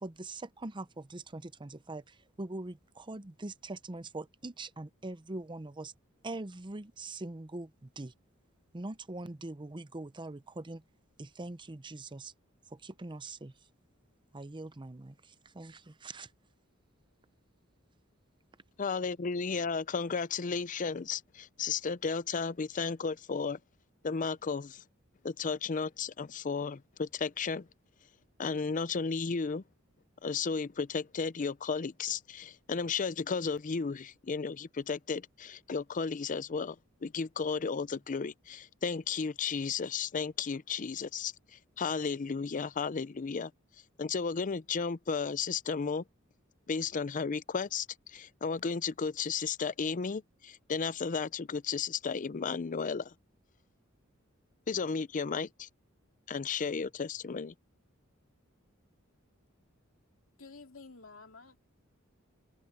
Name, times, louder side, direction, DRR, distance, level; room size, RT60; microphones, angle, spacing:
voice 1, 0.0-5.9 6.2-8.1 8.7-10.8 11.2-12.3 12.7-13.5 14.3-16.3, right 2 dB, 25° right, 0.7 m, -42 dB
voice 2, 18.8-23.6 24.0-24.8 25.2-27.7 28.4-29.6 30.2-36.8 37.0-41.3 41.8-43.5 44.0-46.0 46.7-53.1 54.7-55.7 56.3-57.5, left 5 dB, 40° left, 0.5 m, -34 dB
voice 3, 60.4-61.6, left 4 dB, 70° left, 2.8 m, -51 dB
head